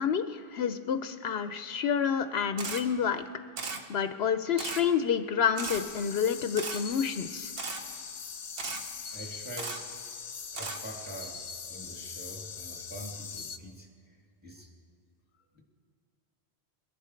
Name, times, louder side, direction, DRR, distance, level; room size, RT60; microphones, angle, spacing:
voice 1, 0.0-3.2 3.9-7.5, left 7 dB, 75° left, 9 dB, 0.8 m, -29 dB
Camera, 2.6-2.8 3.6-3.8 4.6-4.8 5.6-5.8 6.6-6.8 7.6-7.8 8.6-8.8 9.6-9.8 10.6-10.8, right 4 dB, 60° right, 1.2 m, -36 dB
sound 1, 5.6-13.6, left 6 dB, 50° left, 0.7 m, -41 dB
voice 2, 9.1-9.9 10.5-13.9 14.4-14.7, right 1 dB, 10° right, -1 dB, 2.2 m, -45 dB
21.5 x 11.0 x 4.5 m, 2.3 s
omnidirectional pair, 1.1 m